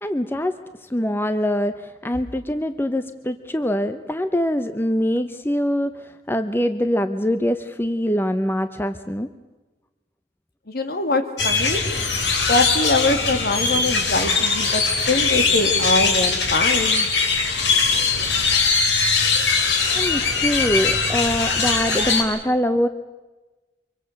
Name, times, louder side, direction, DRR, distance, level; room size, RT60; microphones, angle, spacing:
voice 1, 0.0-9.3 19.9-22.9, equal, 10° left, 10 dB, 0.7 m, -24 dB
voice 2, 10.7-11.8 12.5-17.1, left 2 dB, 55° left, 8 dB, 2.2 m, -23 dB
sound 1, 11.4-22.2, left 4 dB, 80° left, 3.4 m, -21 dB
25.0 x 23.5 x 6.5 m, 1.2 s
head